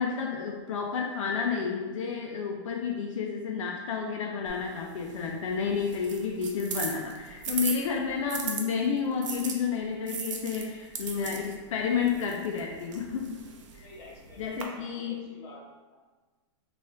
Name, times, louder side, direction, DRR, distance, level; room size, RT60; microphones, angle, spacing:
voice 1, 0.0-13.4 13.7-13.9 14.4-15.3, left 6 dB, 80° left, 0 dB, 0.4 m, -31 dB
sound 1, 4.5-8.6 9.2-14.6, right 6 dB, 75° right, 0.5 m, -39 dB
voice 2, 13.8-16.0, left 2 dB, 45° left, -3 dB, 0.9 m, -49 dB
4.1 x 2.4 x 2.4 m, 1.3 s
supercardioid pair, 165°, 16 cm